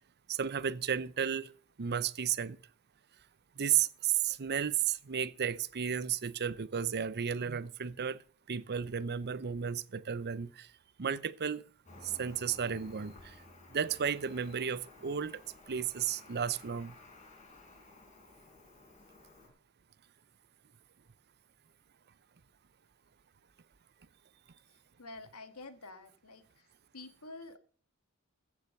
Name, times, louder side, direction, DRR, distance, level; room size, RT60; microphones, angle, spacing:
voice 1, 0.3-1.5 1.8-2.6 3.6-8.2 8.5-10.7 11.0-11.6 12.0-13.3 13.7-15.4 15.7-16.9, right 8 dB, 50° right, 0.7 m, -33 dB
Cricket, 11.8-19.5, left 2 dB, 35° left, 6.3 m, -55 dB
voice 2, 24.7-26.7 26.9-27.6, left 2 dB, 80° left, 1.8 m, -49 dB
15.0 x 7.3 x 6.6 m
head